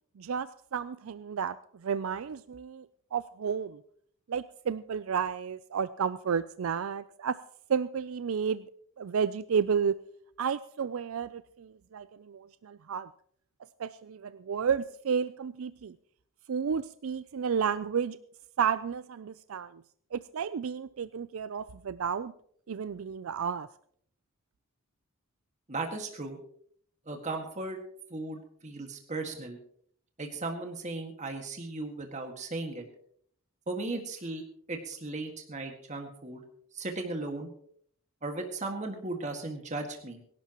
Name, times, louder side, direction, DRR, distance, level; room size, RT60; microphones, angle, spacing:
voice 1, 0.2-2.9 3.1-3.8 4.3-7.4 7.7-8.6 9.0-10.0 10.4-13.1 13.8-16.0 16.5-18.2 18.6-19.8 20.1-22.3 22.7-23.7, right 7 dB, 85° right, 14 dB, 0.4 m, -32 dB
voice 2, 25.7-26.4 27.1-27.8 28.1-29.6 30.2-32.9 33.7-34.4 34.7-36.4 36.7-37.5 38.2-40.2, right 2 dB, 35° right, 3 dB, 1.9 m, -36 dB
23.5 x 11.5 x 3.0 m, 0.62 s
head